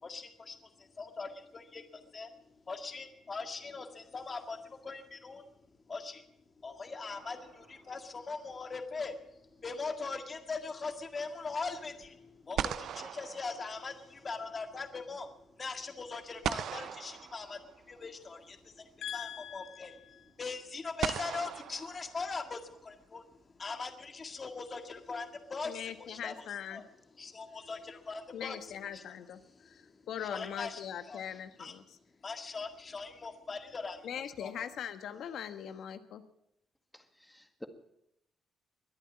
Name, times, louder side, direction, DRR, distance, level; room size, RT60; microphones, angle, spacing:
voice 1, 0.0-2.3 2.7-5.4 5.9-6.2 6.6-9.2 9.6-15.3 15.6-23.3 23.5-26.3 26.7-26.8 27.2-29.0 29.8-30.0 30.3-30.8 31.1-31.7 32.2-34.6, left 4 dB, 35° left, 1.8 m, -41 dB
sound 1, 7.1-8.0 12.0-12.1 12.6-14.3 16.4-18.0 19.4-19.5 21.0-22.7, right 9 dB, 70° right, 0.6 m, -39 dB
voice 2, 19.0-20.3 25.6-26.8 28.3-29.4 29.6-32.0 34.0-36.2, left 9 dB, 75° left, 1.3 m, -41 dB
voice 3, 36.9-37.7, left 1 dB, 5° left, 1.8 m, -50 dB
23.0 x 8.8 x 7.2 m
cardioid pair, 90°, 0 cm